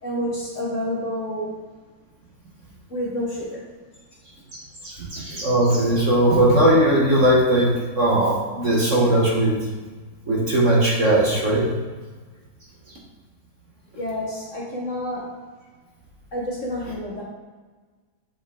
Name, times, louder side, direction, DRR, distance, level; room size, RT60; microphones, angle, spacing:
voice 1, 0.0-1.5 2.9-3.6 13.9-15.3 16.3-17.2, equal, 45° left, -4 dB, 1.3 m, -29 dB
voice 2, 4.5-7.7 8.0-9.6 10.3-11.7, right 1 dB, 45° right, -4 dB, 1.3 m, -19 dB
7.9 x 5.1 x 3.7 m, 1.4 s
omnidirectional pair, 2.1 m